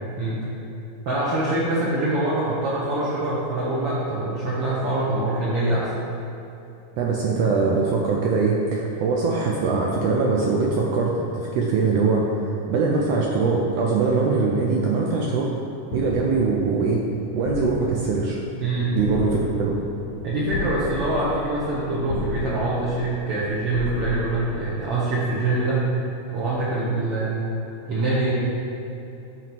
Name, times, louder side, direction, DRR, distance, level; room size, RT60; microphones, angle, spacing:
voice 1, 1.0-5.9 18.6-18.9 20.2-26.1 26.3-27.6 27.8-28.3, right 2 dB, 60° right, -8 dB, 1.7 m, -24 dB
voice 2, 7.0-15.5 15.9-17.0 17.3-18.4 18.9-19.8, right 4 dB, 80° right, -2 dB, 1.4 m, -22 dB
sound 1, 15.9-25.4, left 2 dB, 70° left, 1.4 m, -34 dB
9.1 x 3.1 x 5.9 m, 3.0 s
omnidirectional pair, 3.5 m